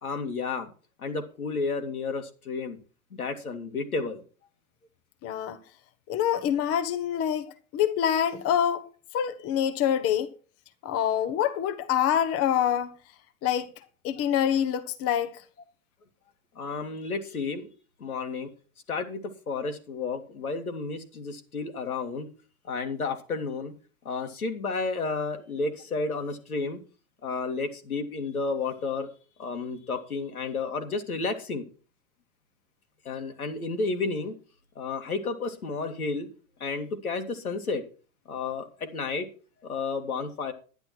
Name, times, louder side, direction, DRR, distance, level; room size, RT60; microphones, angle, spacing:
voice 1, 0.0-0.7 1.0-2.8 3.1-4.2 16.6-17.7 18.0-18.5 18.9-22.3 22.6-23.7 24.0-26.8 27.2-29.1 29.4-31.6 33.0-34.3 34.8-36.3 36.6-37.8 38.3-39.3 39.6-40.5, left 4 dB, 85° left, 2.4 m, -31 dB
voice 2, 5.2-5.6 6.1-8.9 9.1-10.3 10.8-12.9 13.4-13.7 14.0-15.4, left 9 dB, 35° left, 1.2 m, -26 dB
10.5 x 10.5 x 4.5 m
hypercardioid pair, 100°, 42 cm